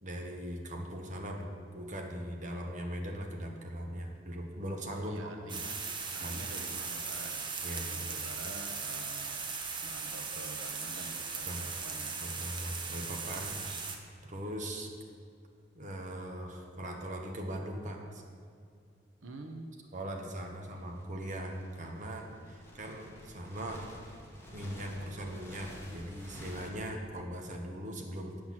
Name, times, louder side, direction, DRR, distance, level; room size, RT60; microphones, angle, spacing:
voice 1, 0.0-5.1 6.2-6.4 7.6-8.1 11.4-11.6 12.2-13.6 14.2-14.9 15.7-18.2 19.9-23.9 24.5-28.5, right 1 dB, 40° right, 2 dB, 1.2 m, -40 dB
voice 2, 4.9-5.8 6.1-12.2 19.2-19.7, right 2 dB, 85° right, 4 dB, 0.9 m, -47 dB
sound 1, 5.5-14.0, right 5 dB, 25° right, 0.9 m, -38 dB
sound 2, 20.7-26.7, left 1 dB, 15° left, 1.9 m, -51 dB
9.2 x 6.2 x 7.4 m, 2.3 s
head